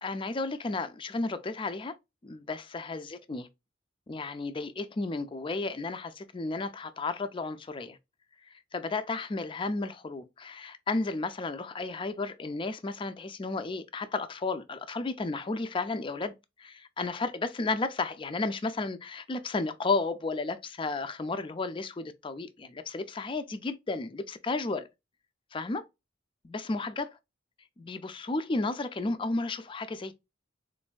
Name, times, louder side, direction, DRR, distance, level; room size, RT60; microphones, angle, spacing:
voice 1, 0.0-1.9 2.2-3.5 4.1-8.0 8.5-24.9 25.5-25.8 26.4-27.2 27.8-30.1, left 3 dB, 25° left, 0.4 m, -33 dB
4.2 x 2.6 x 2.2 m
head